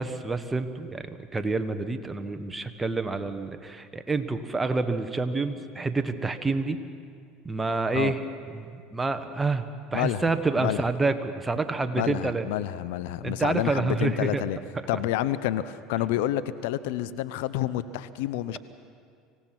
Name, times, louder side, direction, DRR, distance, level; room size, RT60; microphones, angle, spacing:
voice 1, 0.0-6.8 7.4-8.2 8.5-9.6 9.9-12.4 13.2-14.4, right 3 dB, 15° right, 7 dB, 1.4 m, -28 dB
voice 2, 11.9-14.6 14.9-18.6, left 13 dB, 75° left, 14 dB, 0.7 m, -29 dB
25.0 x 17.0 x 6.1 m, 2.2 s
hypercardioid pair, 85°, 0 cm